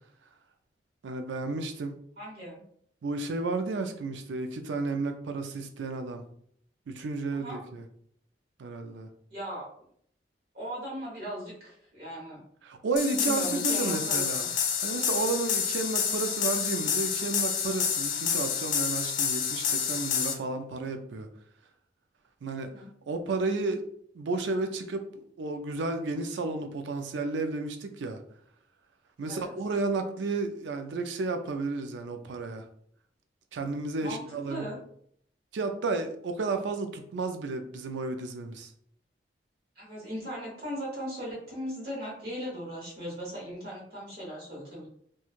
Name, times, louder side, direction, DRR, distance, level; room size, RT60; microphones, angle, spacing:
voice 1, 1.0-1.9 3.0-6.2 6.9-7.8 8.6-9.1 12.6-14.4 14.8-21.3 22.4-23.8 24.1-28.2 29.2-32.6 33.5-34.7 35.5-38.7, right 3 dB, 90° right, 7 dB, 0.4 m, -32 dB
voice 2, 2.2-2.6 7.3-7.6 9.3-9.7 10.5-12.4 13.2-14.5 22.6-22.9 29.3-29.5 34.0-34.8 39.8-44.9, equal, 60° right, -5 dB, 1.1 m, -38 dB
sound 1, 13.0-20.3, left 7 dB, 45° left, 0.3 m, -29 dB
3.0 x 2.2 x 2.4 m, 0.65 s
head